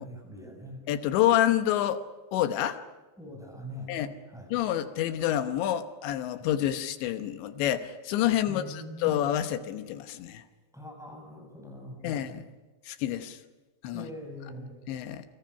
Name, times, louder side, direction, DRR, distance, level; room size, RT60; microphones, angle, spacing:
voice 1, 0.0-0.8 3.2-3.9 4.3-4.5 8.5-9.2 10.7-12.3 13.9-14.8, left 1 dB, ahead, 1 dB, 7.2 m, -42 dB
voice 2, 0.9-2.0 2.3-2.8 3.9-4.1 4.5-10.4 12.0-12.4 12.9-13.4 13.8-14.1 14.4-14.5 14.9-15.2, left 12 dB, 80° left, 9 dB, 3.3 m, -28 dB
28.5 x 26.0 x 5.8 m, 1.2 s
omnidirectional pair, 5.2 m